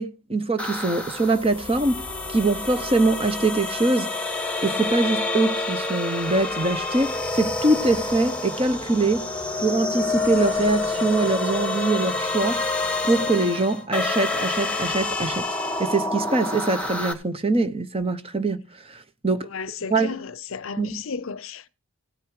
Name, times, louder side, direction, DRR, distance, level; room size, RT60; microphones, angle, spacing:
voice 1, 0.0-4.3 4.6-9.3 9.6-12.7 13.0-15.5 15.8-19.5 19.9-20.1 20.8-21.0, right 2 dB, 25° right, 0.9 m, -23 dB
sound 1, 0.6-17.1, left 3 dB, 5° left, 1.5 m, -28 dB
sound 2, 9.7-14.2, right 3 dB, 80° right, 1.3 m, -43 dB
voice 2, 19.4-21.7, left 5 dB, 65° left, 0.6 m, -34 dB
17.0 x 6.4 x 4.8 m
head